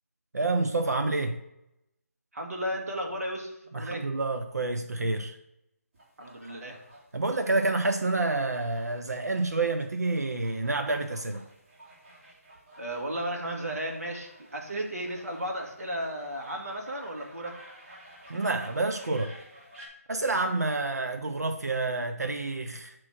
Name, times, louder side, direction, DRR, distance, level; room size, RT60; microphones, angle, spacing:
voice 1, 0.3-1.4 3.7-5.4 7.1-11.4 18.3-19.3 20.1-22.9, right 2 dB, 80° right, 6 dB, 0.6 m, -28 dB
voice 2, 2.3-4.1 6.2-6.8 12.8-17.5, equal, 65° right, 1 dB, 1.7 m, -34 dB
sound 1, 5.9-19.9, right 1 dB, 45° right, 2.8 m, -53 dB
7.3 x 3.1 x 6.1 m, 0.84 s
figure-of-eight pair, 155°, 9 cm